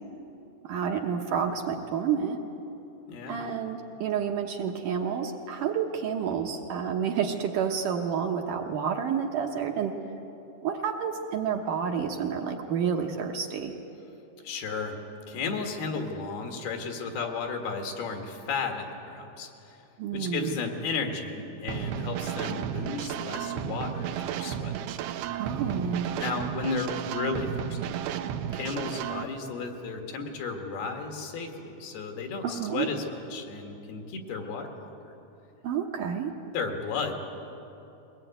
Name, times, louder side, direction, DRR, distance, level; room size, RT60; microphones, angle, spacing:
voice 1, 0.6-2.4 3.3-10.0 10.6-13.7 20.0-20.6 25.3-26.1 32.4-32.9 35.6-36.3, right 7 dB, 70° right, 2 dB, 2.4 m, -29 dB
voice 2, 3.1-3.5 14.4-15.0 15.3-19.8 20.1-24.8 26.2-28.0 28.5-35.1 36.5-37.1, left 4 dB, 75° left, 4 dB, 3.7 m, -34 dB
sound 1, 21.7-29.2, right 9 dB, 90° right, 2.8 m, -33 dB
22.5 x 19.0 x 9.1 m, 3.0 s
omnidirectional pair, 4.5 m